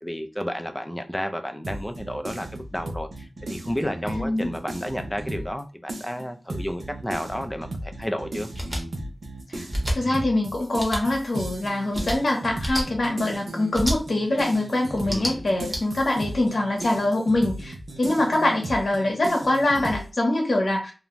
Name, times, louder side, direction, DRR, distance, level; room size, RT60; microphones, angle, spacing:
voice 1, 0.0-8.5 15.1-15.7, equal, 10° left, 6 dB, 0.4 m, -32 dB
sound 1, 1.6-5.6 5.9-20.1, right 1 dB, 75° right, 0.6 m, -36 dB
voice 2, 4.2-4.5 9.5-9.6 9.9-20.9, left 1 dB, 65° left, 0 dB, 0.8 m, -24 dB
sound 2, 8.5-8.8 9.7-10.0 10.8-11.0 11.9-12.2 12.6-12.8 13.7-14.0 15.0-15.8, equal, 10° right, 1.1 m, -27 dB
2.5 x 2.2 x 2.9 m, 0.34 s
wide cardioid pair, 75°, 0 cm